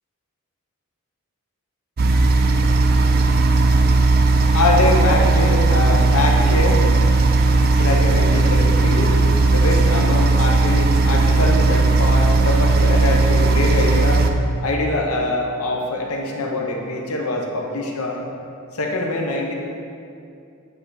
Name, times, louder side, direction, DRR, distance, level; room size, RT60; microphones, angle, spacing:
sound 1, 2.0-14.3, right 3 dB, 45° right, 0.4 m, -16 dB
voice 1, 2.2-14.3 14.6-18.3 18.7-19.5, left 2 dB, 80° left, 1 dB, 0.8 m, -24 dB
8.3 x 3.3 x 4.8 m, 2.5 s
head